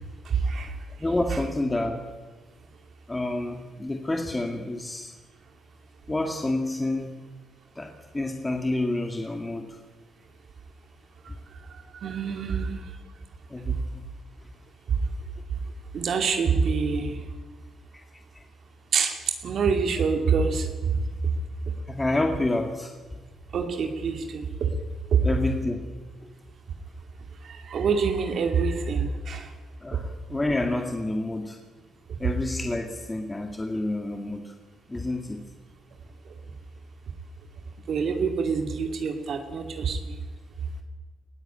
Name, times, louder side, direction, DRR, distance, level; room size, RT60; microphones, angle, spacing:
voice 1, 0.2-0.8 11.2-11.3 11.7-12.8 15.9-17.2 18.9-20.7 21.2-21.3 23.5-24.7 25.1-25.3 27.4-29.5 29.9-30.0 36.3-36.4 37.9-40.2, right 5 dB, 60° right, 4 dB, 2.5 m, -26 dB
voice 2, 1.0-2.0 3.1-5.1 6.1-7.2 7.8-9.8 13.5-14.0 21.9-22.9 25.2-25.9 29.8-31.6 32.2-34.5 34.9-35.4, left 2 dB, 15° left, 4 dB, 2.0 m, -28 dB
20.5 x 16.5 x 8.9 m, 1.3 s
cardioid pair, 90°, 0 cm